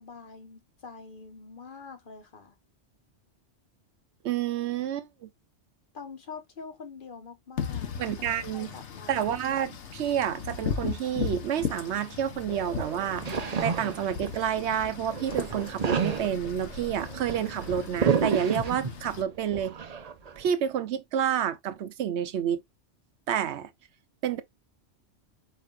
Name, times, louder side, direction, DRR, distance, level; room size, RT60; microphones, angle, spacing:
voice 1, 0.0-2.6 5.9-8.2 8.5-9.3, left 5 dB, 50° left, 1.1 m, -45 dB
voice 2, 4.2-5.3 8.0-8.7 9.1-19.9 20.4-22.6 23.3-23.7 24.2-24.4, right 9 dB, 70° right, 1.0 m, -29 dB
Wind / Rain, 7.6-19.2, left 7 dB, 75° left, 1.2 m, -37 dB
sound 1, 12.4-14.7 15.0-19.1 19.5-20.5, right 6 dB, 40° right, 0.7 m, -31 dB
5.0 x 4.2 x 2.4 m
omnidirectional pair, 1.2 m